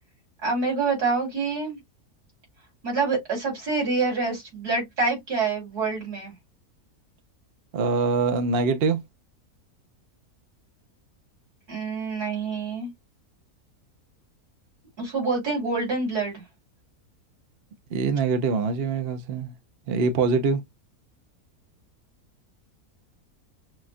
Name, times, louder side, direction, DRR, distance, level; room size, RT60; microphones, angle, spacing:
voice 1, 0.4-1.8 2.8-6.3 11.7-12.9 15.0-16.4, right 4 dB, 80° right, 3.7 m, -26 dB
voice 2, 7.7-9.0 17.9-19.5 19.9-20.6, right 4 dB, 50° right, 0.8 m, -24 dB
6.2 x 2.3 x 2.5 m
omnidirectional pair, 1.6 m